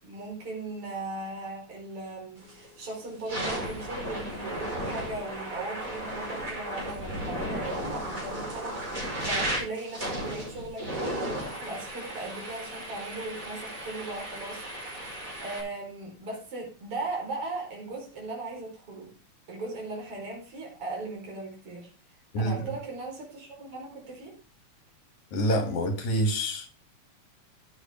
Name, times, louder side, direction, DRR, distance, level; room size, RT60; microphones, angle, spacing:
voice 1, 0.0-14.7 15.4-19.1 19.5-21.9 22.4-24.4, right 2 dB, 50° right, 5.5 m, -38 dB
sound 1, 2.4-2.7 3.1-15.6, right 1 dB, 25° right, 5.8 m, -35 dB
voice 2, 22.3-22.7 25.3-26.7, equal, 75° left, 3.9 m, -27 dB
13.5 x 9.0 x 3.6 m
omnidirectional pair, 3.3 m